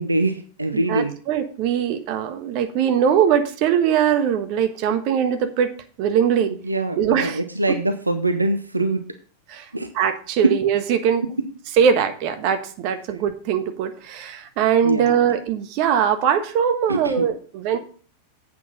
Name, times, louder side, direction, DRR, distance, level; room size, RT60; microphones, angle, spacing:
voice 1, 0.0-1.1 6.6-9.0 9.7-9.9 10.4-10.5 14.8-15.3 16.9-17.3, right 2 dB, 80° right, 8 dB, 0.8 m, -23 dB
voice 2, 0.7-5.7 6.0-6.5 7.0-7.4 9.5-9.6 9.9-11.2 11.8-17.8, right 8 dB, 45° right, 9 dB, 1.3 m, -21 dB
8.3 x 6.0 x 5.8 m, 0.42 s
figure-of-eight pair, 90°, 0 cm